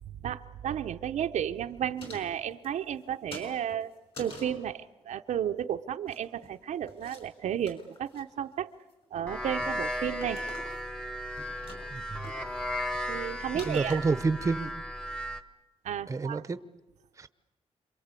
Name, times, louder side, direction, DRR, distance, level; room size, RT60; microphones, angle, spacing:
voice 1, 0.2-3.9 4.2-8.7 9.1-10.4 13.1-14.0 15.8-16.4, right 9 dB, 80° right, 7 dB, 0.8 m, -33 dB
sound 1, 2.0-3.0 3.3-4.6 5.9-6.6 6.9-7.3 7.5-8.2 8.7-9.1 9.4-9.8 10.2-11.0 11.2-12.0 12.2-12.4 12.9-13.0 13.2-13.3 13.6-14.5, left 1 dB, 50° left, 6.3 m, -46 dB
sound 2, 9.3-15.4, equal, 5° left, 1.1 m, -35 dB
voice 2, 11.9-12.3 13.6-14.7 16.1-16.6 17.2-17.3, right 4 dB, 25° right, 12 dB, 0.8 m, -29 dB
27.0 x 23.5 x 8.3 m, 1.1 s
wide cardioid pair, 145°, 12 cm